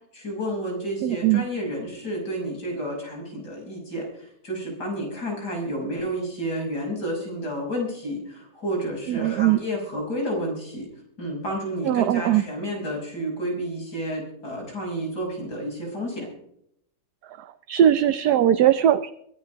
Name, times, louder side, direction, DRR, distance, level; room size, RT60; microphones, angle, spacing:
voice 1, 0.1-10.9 11.2-16.3, equal, 75° left, -2 dB, 7.1 m, -30 dB
voice 2, 1.0-1.5 9.1-9.6 11.8-12.4 17.3-19.1, right 11 dB, 75° right, 10 dB, 1.2 m, -20 dB
23.5 x 10.5 x 3.5 m, 0.72 s
omnidirectional pair, 1.8 m